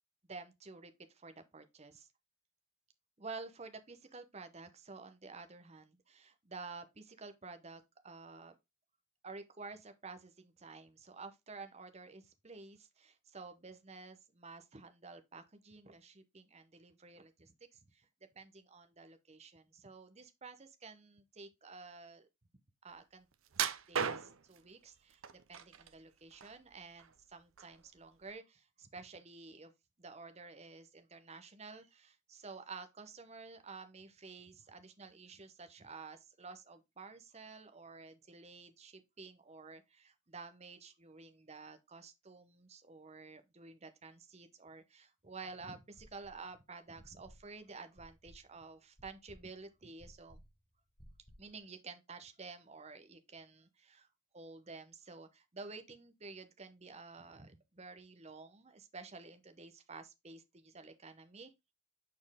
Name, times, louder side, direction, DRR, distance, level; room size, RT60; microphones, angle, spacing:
voice 1, 0.3-2.1 3.2-8.5 9.2-17.5 17.8-18.1 18.3-22.3 22.8-23.3 23.6-25.2 25.5-28.4 28.8-29.7 30.0-50.4 51.4-54.1 54.3-61.7, right 4 dB, 30° right, 0.8 m, -51 dB
sound 1, 23.5-24.6 25.2-25.9 26.3-27.2 27.6-27.8 28.3-28.4, right 7 dB, 70° right, 0.6 m, -36 dB
sound 2, 46.0-46.5 47.0-51.6, equal, 20° left, 1.3 m, -59 dB
7.4 x 4.3 x 3.5 m
head